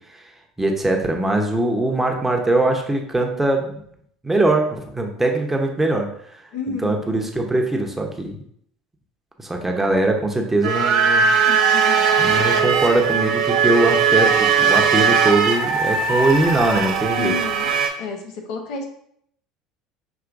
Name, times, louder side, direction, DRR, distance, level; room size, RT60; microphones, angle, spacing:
voice 1, 0.6-3.8 4.2-6.1 6.8-8.4 9.4-11.3 12.2-17.3, right 2 dB, 10° right, 2 dB, 0.8 m, -21 dB
voice 2, 6.5-7.0 11.4-12.1 17.2-17.7 18.0-18.8, left 5 dB, 70° left, 2 dB, 0.9 m, -30 dB
sound 1, 10.6-17.9, right 6 dB, 70° right, 1.0 m, -19 dB
sound 2, 10.7-17.8, right 5 dB, 50° right, 0.4 m, -26 dB
5.9 x 2.9 x 2.6 m, 0.66 s
hypercardioid pair, 75°, 3 cm